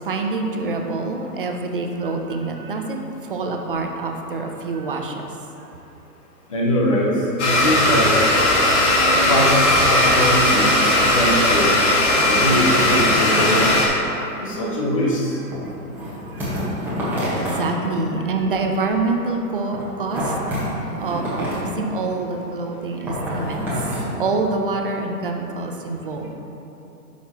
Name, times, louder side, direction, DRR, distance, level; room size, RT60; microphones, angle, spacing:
voice 1, 0.0-3.0 3.3-5.2 16.3-16.4 17.4-20.3 21.0-26.3, right 3 dB, 35° right, 3 dB, 0.5 m, -26 dB
voice 2, 6.5-7.1 7.4-8.1 9.3-9.6 9.9-11.8 12.3-13.6 14.4-15.4, equal, 20° left, -3 dB, 0.4 m, -22 dB
Domestic sounds home sounds, 7.4-13.9, left 1 dB, 45° left, 1.7 m, -17 dB
sound 1, 12.1-13.8 15.5-17.6 18.7-19.1 19.7-21.7 23.1-24.1 24.4-24.5, equal, 5° right, 1.1 m, -27 dB
10.5 x 5.8 x 2.8 m, 2.9 s
hypercardioid pair, 155°, 49 cm